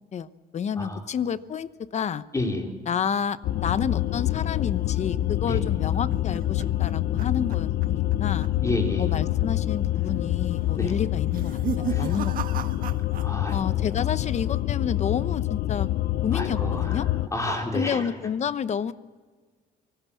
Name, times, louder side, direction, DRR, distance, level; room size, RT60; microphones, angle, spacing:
voice 1, 0.1-2.2 2.9-8.5 9.0-12.3 13.5-15.9 16.2-17.1 17.7-18.9, left 7 dB, 40° left, 14 dB, 0.9 m, -30 dB
voice 2, 2.3-2.7 5.5-5.6 8.6-9.1 10.8-10.9 11.9-12.1 13.2-13.6 16.3-17.0 17.3-18.1, left 1 dB, 20° left, 1 dB, 4.5 m, -29 dB
sound 1, 3.4-17.3, left 14 dB, 65° left, 0.7 m, -26 dB
sound 2, 5.6-8.2 8.4-8.8 9.1-9.2 9.9-10.3 11.2-13.6 13.9-14.5, right 9 dB, 55° right, 1.5 m, -36 dB
25.0 x 18.5 x 7.2 m, 1.5 s
cardioid pair, 110°, 17 cm